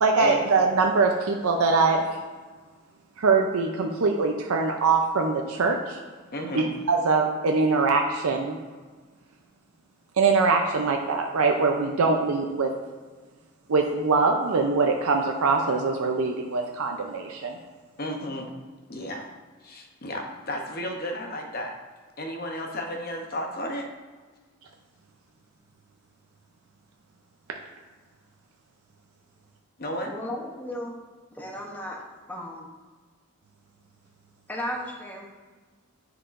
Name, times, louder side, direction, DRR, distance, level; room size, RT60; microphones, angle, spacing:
voice 1, 0.0-2.2 3.2-6.0 6.5-8.6 10.2-12.7 13.7-17.6, right 4 dB, 85° right, 2 dB, 0.5 m, -23 dB
voice 2, 6.3-6.7 18.0-18.5 18.9-19.3 19.6-21.7 22.2-23.9 29.8-30.2, equal, 45° left, 2 dB, 0.8 m, -33 dB
voice 3, 30.1-30.9 31.3-32.0 32.3-32.7 34.5-35.3, left 1 dB, 10° left, -1 dB, 0.8 m, -34 dB
9.8 x 4.8 x 2.5 m, 1.4 s
head